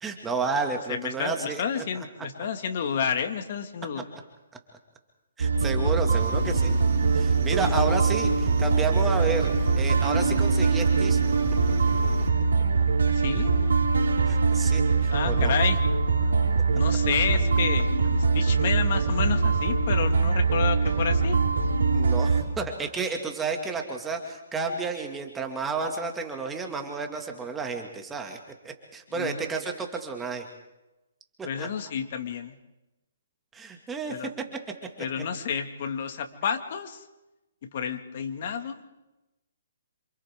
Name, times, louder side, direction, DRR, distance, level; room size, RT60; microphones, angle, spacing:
voice 1, 0.0-1.9 2.2-2.3 5.4-6.7 7.1-11.2 14.3-15.5 21.9-28.4 28.6-30.5 31.4-31.7 33.5-34.2, right 4 dB, 10° right, 3 dB, 2.2 m, -31 dB
voice 2, 0.9-4.0 13.0-13.5 15.1-15.8 16.7-17.9 18.3-21.4 29.1-29.5 31.5-32.6 34.1-34.3 35.0-37.0 37.7-38.8, left 7 dB, 50° left, 6 dB, 2.1 m, -30 dB
sound 1, 5.4-22.4, right 4 dB, 85° right, 4.0 m, -23 dB
sound 2, 6.1-12.3, right 4 dB, 45° right, 4.0 m, -40 dB
28.5 x 26.0 x 3.7 m, 1.0 s
hypercardioid pair, 150°, 0 cm